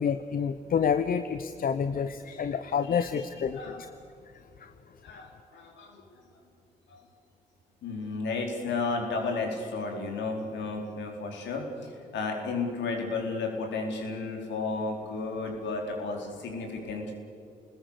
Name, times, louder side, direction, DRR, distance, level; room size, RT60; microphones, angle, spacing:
voice 1, 0.0-3.9, left 7 dB, 45° left, 11 dB, 0.9 m, -28 dB
voice 2, 2.9-3.2 3.5-3.9 5.0-6.0 6.9-7.0 7.8-17.1, left 3 dB, 60° left, 1 dB, 4.5 m, -33 dB
29.5 x 20.5 x 6.8 m, 2.7 s
figure-of-eight pair, 45°, 21 cm